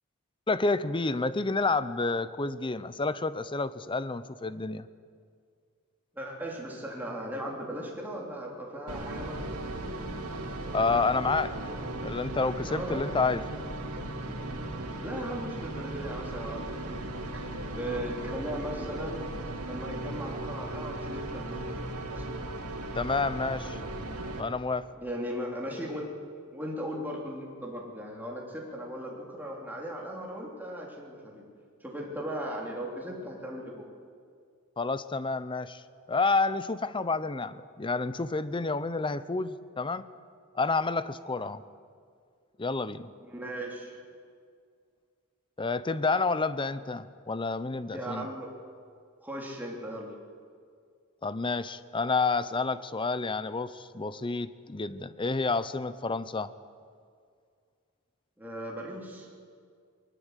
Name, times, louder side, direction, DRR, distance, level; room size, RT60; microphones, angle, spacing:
voice 1, 0.5-4.9 10.7-11.6 12.0-13.4 22.9-23.8 24.4-24.9 34.8-35.8 36.1-40.1 40.5-41.6 42.6-43.1 45.6-48.3 51.2-56.5, left 3 dB, 25° left, 15 dB, 0.7 m, -29 dB
voice 2, 6.1-9.4 9.8-10.1 11.7-11.8 12.7-13.2 15.0-17.5 17.7-19.3 19.6-22.4 25.0-26.1 26.5-31.4 31.8-33.8 43.2-43.9 47.9-48.5 49.2-50.2 58.4-59.3, equal, 10° right, -2 dB, 3.4 m, -38 dB
sound 1, 8.9-24.4, right 2 dB, 85° right, 2.6 m, -37 dB
21.5 x 19.5 x 8.2 m, 2.2 s
head